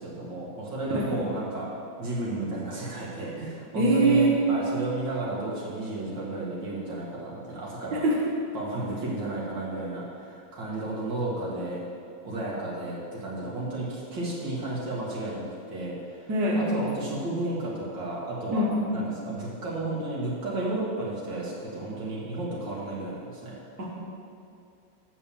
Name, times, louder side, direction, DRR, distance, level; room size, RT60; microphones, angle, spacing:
voice 1, 0.0-1.7 2.0-8.0 8.5-11.8 12.2-16.3 16.6-18.7 18.9-23.6, right 2 dB, 90° right, -6 dB, 2.7 m, -33 dB
voice 2, 3.8-4.3 7.9-8.2 16.3-16.6 18.5-18.8 23.8-23.9, right 2 dB, 65° right, -3 dB, 1.8 m, -23 dB
7.3 x 6.8 x 6.9 m, 2.5 s
omnidirectional pair, 1.9 m